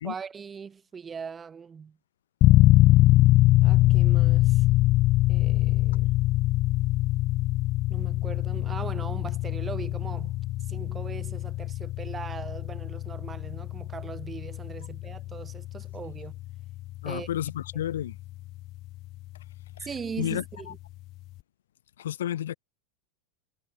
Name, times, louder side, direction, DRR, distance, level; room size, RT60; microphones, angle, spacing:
voice 1, 0.0-2.0 3.6-4.6 5.3-6.1 7.9-10.4 10.7-16.3 17.0-17.3 19.8-20.8, right 6 dB, 25° right, 7.9 m, -40 dB
sound 1, 2.4-19.1, left 17 dB, 45° left, 0.6 m, -23 dB
voice 2, 17.0-18.2 19.8-19.9 20.2-20.7 22.0-22.6, left 11 dB, 75° left, 4.0 m, -31 dB
hypercardioid pair, 95°, 0 cm